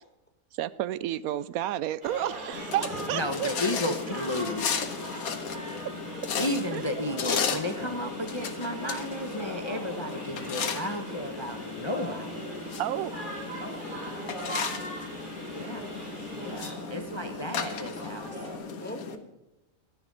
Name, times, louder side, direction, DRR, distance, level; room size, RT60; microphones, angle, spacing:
voice 1, 0.6-3.5 6.7-6.8 12.8-13.1, right 13 dB, 85° right, 18 dB, 1.0 m, -31 dB
sound 1, 2.0-18.6, right 1 dB, 35° right, 3.7 m, -40 dB
sound 2, 2.5-19.2, left 6 dB, 85° left, 1.5 m, -35 dB
voice 2, 3.1-4.8 6.4-12.5 15.5-15.9 16.3-18.4, left 1 dB, 25° left, 7 dB, 0.8 m, -33 dB
voice 3, 13.6-14.0 14.5-15.5 18.8-19.4, left 1 dB, 5° left, 4 dB, 1.5 m, -43 dB
13.0 x 10.0 x 5.4 m, 0.99 s
omnidirectional pair, 1.5 m